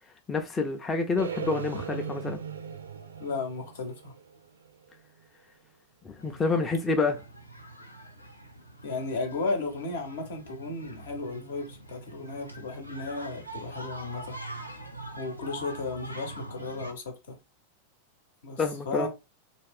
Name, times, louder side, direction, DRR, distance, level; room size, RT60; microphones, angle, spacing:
voice 1, 0.3-2.4 6.0-7.2 18.6-19.1, left 4 dB, 15° left, 0.4 m, -28 dB
sound 1, 1.2-5.2, right 7 dB, 70° right, 0.4 m, -38 dB
voice 2, 3.2-4.1 8.8-14.4 15.2-17.4 18.4-19.1, left 3 dB, 60° left, 0.8 m, -34 dB
sound 2, 6.2-16.9, right 1 dB, 85° left, 0.5 m, -44 dB
2.6 x 2.3 x 3.4 m
figure-of-eight pair, 90°, 0 cm